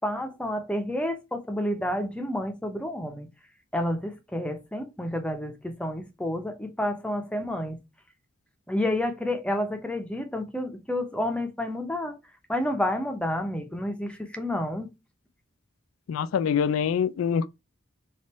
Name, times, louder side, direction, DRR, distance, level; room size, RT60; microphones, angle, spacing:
voice 1, 0.0-3.3 3.7-7.8 8.7-12.2 12.5-14.9, left 1 dB, 5° left, 0.6 m, -30 dB
voice 2, 16.1-17.5, left 7 dB, 90° left, 0.3 m, -25 dB
3.5 x 2.5 x 4.0 m
head